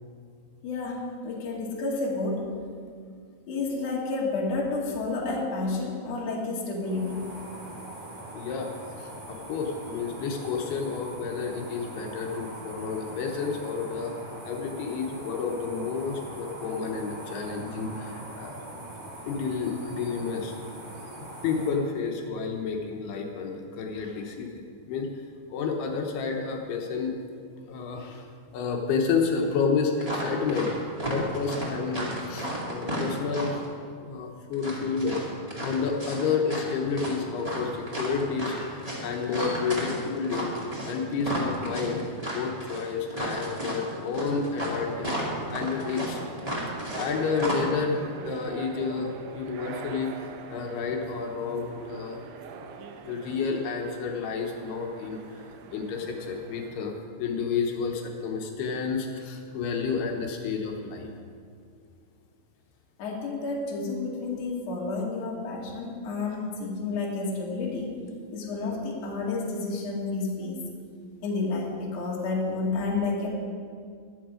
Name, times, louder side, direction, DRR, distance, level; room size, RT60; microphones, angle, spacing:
voice 1, 0.6-2.4 3.5-7.2 63.0-67.9 68.3-70.6 71.2-73.3, left 3 dB, 45° left, -3 dB, 2.8 m, -30 dB
sound 1, 6.7-21.7, right 1 dB, 55° right, 6.0 m, -42 dB
voice 2, 8.3-8.7 9.0-14.1 14.4-18.5 19.3-20.5 21.4-25.1 25.5-27.1 27.7-28.2 28.5-33.5 34.0-35.2 35.6-37.7 38.0-40.5 40.9-46.3 46.9-52.2 53.0-55.2 55.7-56.9 57.2-61.1, left 5 dB, 85° left, 2 dB, 3.1 m, -30 dB
sound 2, 30.0-30.7 31.0-33.6 34.5-36.7 36.9-47.1 47.4-47.5, equal, 15° right, 1.3 m, -33 dB
sound 3, 44.6-56.8, right 6 dB, 85° right, 1.7 m, -44 dB
21.5 x 7.3 x 5.0 m, 2.2 s
omnidirectional pair, 4.5 m